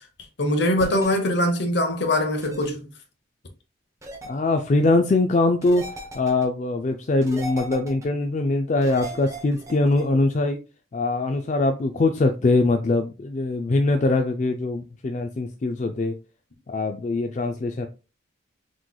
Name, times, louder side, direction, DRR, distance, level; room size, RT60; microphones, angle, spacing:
voice 1, 0.4-2.8, left 1 dB, 60° left, 0.9 m, -22 dB
sound 1, 0.8-1.1 2.4-2.7 4.0-4.3 5.6-6.4 7.2-8.1 8.8-10.0, right 1 dB, 15° right, 0.8 m, -37 dB
voice 2, 4.2-5.8 6.1-10.6 10.9-16.1 16.7-17.9, left 2 dB, 40° left, 0.3 m, -22 dB
5.9 x 3.2 x 2.2 m
head